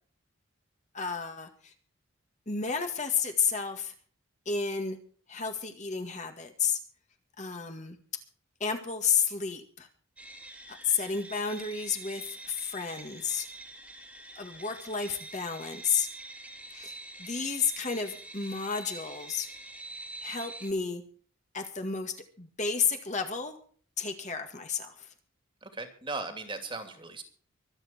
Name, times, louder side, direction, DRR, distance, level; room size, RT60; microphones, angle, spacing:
voice 1, 0.9-1.7 2.5-3.9 4.5-5.0 5.3-6.8 7.4-8.2 8.6-9.9 10.7-13.5 14.4-16.1 16.7-19.5 20.2-21.0 21.5-23.6 24.0-25.1, left 6 dB, 35° left, 5 dB, 2.0 m, -31 dB
sound 1, 10.2-20.7, right 2 dB, 5° right, 2.4 m, -45 dB
voice 2, 25.6-27.2, right 3 dB, 25° right, 6 dB, 2.6 m, -38 dB
24.5 x 8.9 x 4.4 m, 0.43 s
head